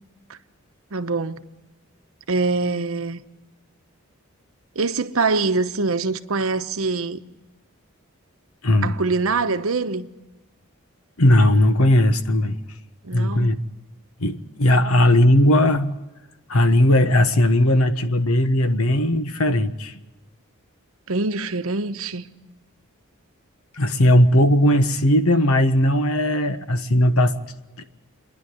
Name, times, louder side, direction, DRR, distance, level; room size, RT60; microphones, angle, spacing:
voice 1, 0.9-1.4 2.3-3.2 4.8-7.2 8.8-10.1 13.0-13.6 21.1-22.2, right 3 dB, 75° right, 1.0 m, -24 dB
voice 2, 8.6-9.0 11.2-12.6 13.1-13.5 14.2-15.9 16.5-19.9 23.8-27.3 27.8-27.9, left 1 dB, 80° left, 1.3 m, -18 dB
28.0 x 11.0 x 9.4 m
head